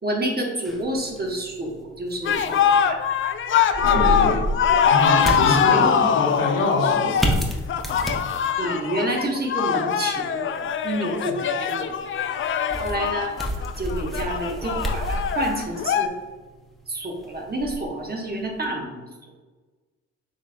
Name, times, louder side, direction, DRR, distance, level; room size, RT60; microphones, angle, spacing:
voice 1, 0.0-3.0 4.0-4.2 4.7-4.8 5.5-5.9 8.6-10.4 10.8-11.9 12.8-13.4 13.8-16.1 16.9-19.0, right 1 dB, 30° right, 1 dB, 1.2 m, -28 dB
sound 1, 0.6-18.7, equal, ahead, 0.9 m, -32 dB
sound 2, 2.2-16.1, left 8 dB, 40° left, 0.4 m, -22 dB
voice 2, 3.8-4.4 4.8-7.4 11.3-11.4, left 2 dB, 80° left, -2 dB, 1.1 m, -26 dB
6.4 x 3.5 x 2.2 m, 1.3 s
hypercardioid pair, 50°, 33 cm